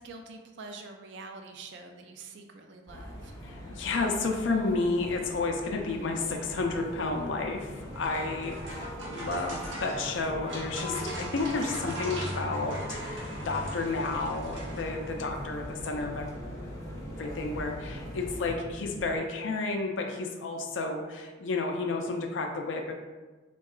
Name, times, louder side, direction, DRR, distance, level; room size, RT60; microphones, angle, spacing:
voice 1, 0.0-3.4, right 3 dB, 70° right, 4 dB, 0.4 m, -45 dB
sound 1, 2.9-18.5, equal, 20° left, 0.5 m, -42 dB
voice 2, 3.4-16.3 17.2-22.9, left 3 dB, 75° left, 3 dB, 0.4 m, -31 dB
sound 2, 6.3-19.2, equal, 50° right, 0.8 m, -44 dB
sound 3, 7.6-15.2, right 1 dB, 90° right, 0.7 m, -41 dB
3.7 x 2.2 x 2.3 m, 1.3 s
head